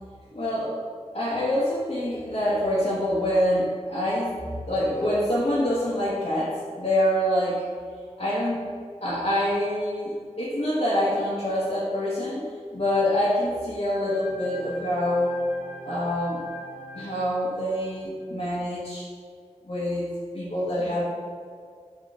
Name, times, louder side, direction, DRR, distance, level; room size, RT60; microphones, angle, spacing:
voice 1, 0.3-0.8 1.1-4.4 4.7-7.6 8.2-8.7 9.0-15.4 15.8-16.4 16.9-19.1 19.6-20.1 20.3-21.0, left 1 dB, 60° left, -10 dB, 1.7 m, -26 dB
sound 1, 13.9-18.4, left 1 dB, 85° left, 0.6 m, -43 dB
8.7 x 3.6 x 3.8 m, 2.1 s
wide cardioid pair, 65°, 12 cm